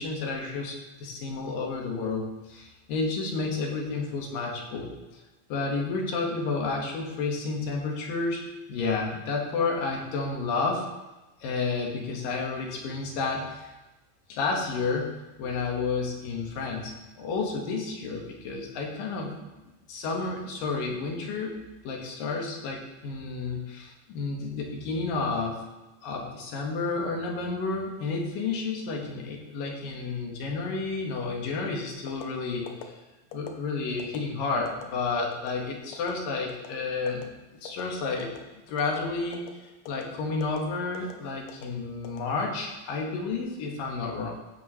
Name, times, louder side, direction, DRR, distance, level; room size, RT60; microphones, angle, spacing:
voice 1, 0.0-5.2 5.5-10.9 11.4-13.7 14.3-15.1 15.4-19.3 19.9-21.6 21.8-25.6 26.0-33.0 33.3-38.3 38.7-44.3, left 4 dB, 85° left, 0 dB, 3.3 m, -31 dB
sound 1, 32.1-32.3 32.7-32.9 33.3-33.5 34.0-34.2 34.7-34.8 35.3-35.5 35.9-36.1 36.5-36.7 37.1-37.2 37.7-37.8 38.2-38.5 38.8-39.0 39.3-39.5 39.9-40.0 40.4-40.6 40.9-41.1 41.5-41.7 42.0-42.7 43.1-43.4, left 9 dB, 70° left, 1.9 m, -42 dB
15.0 x 8.8 x 3.2 m, 1.1 s
omnidirectional pair, 3.9 m